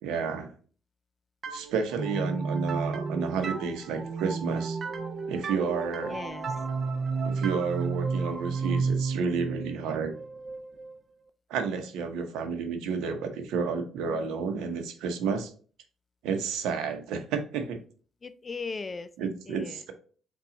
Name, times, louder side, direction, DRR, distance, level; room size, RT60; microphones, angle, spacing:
voice 1, 0.0-0.5 1.5-4.8 5.3-6.1 7.2-10.1 11.5-15.5 16.2-17.8 19.2-19.9, right 5 dB, 85° right, 7 dB, 0.7 m, -31 dB
sound 1, 1.4-11.0, right 4 dB, 45° right, 0.4 m, -32 dB
voice 2, 6.0-6.5 18.2-19.8, left 4 dB, 30° left, 14 dB, 0.4 m, -38 dB
5.6 x 2.3 x 3.8 m, 0.42 s
cardioid pair, 90°, 0 cm